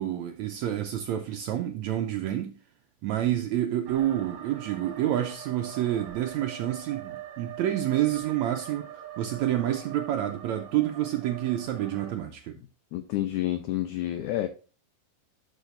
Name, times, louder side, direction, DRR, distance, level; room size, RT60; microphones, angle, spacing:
voice 1, 0.0-2.5 3.0-12.6, right 12 dB, 85° right, 1.6 m, -28 dB
sound 1, 3.9-12.1, right 11 dB, 65° right, 3.1 m, -42 dB
voice 2, 12.9-14.5, left 14 dB, 75° left, 1.9 m, -29 dB
11.5 x 6.6 x 2.6 m
omnidirectional pair, 4.1 m